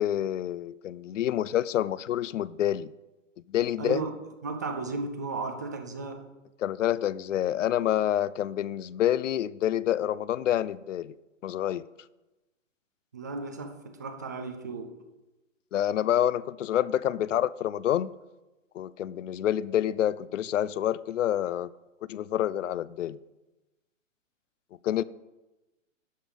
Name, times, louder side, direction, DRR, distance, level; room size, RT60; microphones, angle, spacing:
voice 1, 0.0-2.9 3.5-4.0 6.6-11.1 11.4-11.8 15.7-18.1 18.7-21.7 22.1-23.2 24.8-25.0, left 11 dB, 70° left, 0.6 m, -27 dB
voice 2, 3.8-6.2 13.1-14.9, right 3 dB, 15° right, 0.3 m, -35 dB
11.0 x 6.6 x 5.3 m
hypercardioid pair, 150°, 39 cm